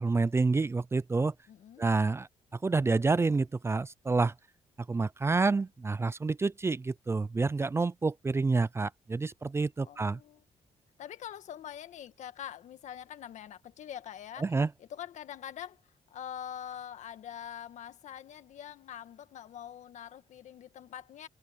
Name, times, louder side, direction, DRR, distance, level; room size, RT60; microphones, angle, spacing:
voice 1, 0.0-1.3 1.8-2.3 2.6-4.3 4.9-10.2 14.4-14.7, right 3 dB, 20° right, 0.5 m, -28 dB
voice 2, 1.5-1.9 9.8-10.4 11.0-14.5 14.8-15.8 16.1-21.3, left 10 dB, 75° left, 1.7 m, -44 dB
cardioid pair, 105°, 13 cm